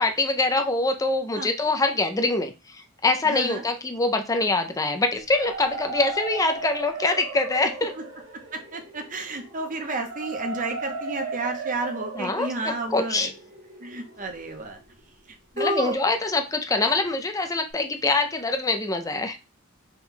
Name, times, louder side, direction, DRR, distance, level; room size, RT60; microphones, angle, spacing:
voice 1, 0.0-7.9 12.1-13.3 15.6-19.4, left 2 dB, 15° left, 6 dB, 0.4 m, -24 dB
voice 2, 3.3-3.6 7.6-7.7 8.5-13.3 13.8-14.8 15.6-16.0, right 2 dB, 35° right, 4 dB, 0.7 m, -31 dB
sound 1, 5.1-15.0, right 4 dB, 65° right, 1.3 m, -36 dB
4.3 x 2.3 x 3.7 m, 0.28 s
head